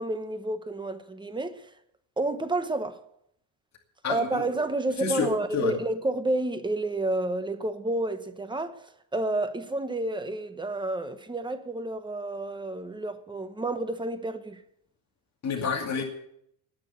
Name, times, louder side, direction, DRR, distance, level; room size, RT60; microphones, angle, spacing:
voice 1, 0.0-1.7 2.2-3.0 4.1-14.6 16.0-16.1, right 2 dB, 10° right, 1.0 m, -30 dB
voice 2, 4.0-4.4 5.0-5.7 15.4-16.0, left 5 dB, 35° left, 2.5 m, -29 dB
19.0 x 6.6 x 8.4 m
cardioid pair, 135°, 46 cm